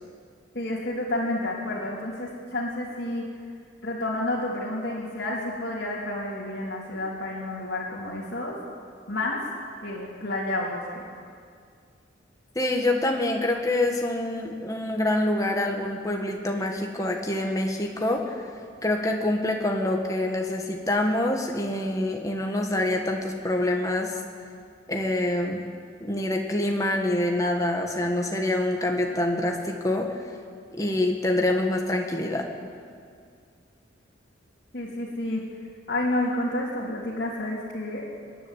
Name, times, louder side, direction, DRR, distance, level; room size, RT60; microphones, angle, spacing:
voice 1, 0.5-3.2 3.8-8.6 9.1-9.4 9.8-11.0 34.7-35.4 35.9-38.1, left 1 dB, 55° left, -8 dB, 3.2 m, -30 dB
voice 2, 12.5-18.5 18.8-24.2 24.9-25.6 26.0-30.2 30.8-32.5, left 1 dB, 15° left, 1 dB, 1.7 m, -26 dB
25.0 x 10.5 x 10.0 m, 2.2 s
head